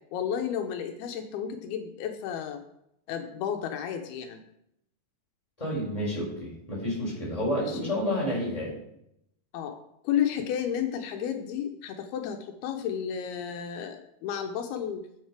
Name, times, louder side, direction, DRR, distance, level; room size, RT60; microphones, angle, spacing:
voice 1, 0.1-2.6 3.1-4.4 7.7-7.9 9.5-9.8 10.0-15.1, left 8 dB, 85° left, 5 dB, 2.6 m, -32 dB
voice 2, 5.6-8.7, left 1 dB, 10° left, -5 dB, 4.3 m, -30 dB
10.5 x 7.4 x 4.7 m, 0.79 s
omnidirectional pair, 4.5 m